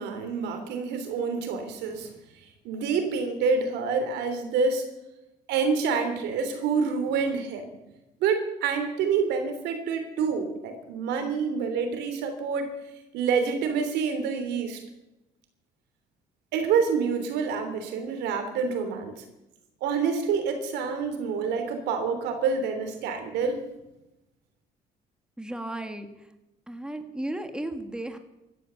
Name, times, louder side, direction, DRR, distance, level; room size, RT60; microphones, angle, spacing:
voice 1, 0.0-2.1 2.6-4.9 5.5-7.7 8.2-12.7 13.1-14.8 16.5-19.1 19.8-23.6, right 5 dB, 85° right, 7 dB, 3.3 m, -27 dB
voice 2, 25.4-26.1 26.7-28.2, right 1 dB, 5° right, 7 dB, 1.9 m, -34 dB
16.0 x 12.5 x 7.0 m, 0.93 s
cardioid pair, 110°, 17 cm